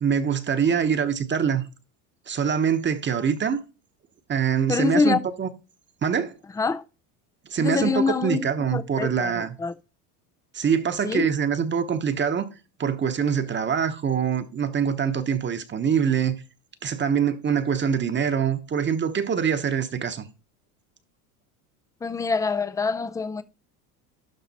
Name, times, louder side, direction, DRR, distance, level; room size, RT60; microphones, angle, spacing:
voice 1, 0.0-1.6 2.3-3.6 4.3-5.5 6.0-6.3 7.5-9.5 10.5-12.5 12.8-16.4 16.8-20.3, right 7 dB, 25° right, 1.0 m, -24 dB
voice 2, 4.7-5.2 6.6-6.8 7.6-8.4 8.7-9.7 11.0-11.3 22.0-23.4, left 4 dB, 10° left, 0.3 m, -25 dB
12.0 x 4.1 x 4.1 m
supercardioid pair, 105°, 47 cm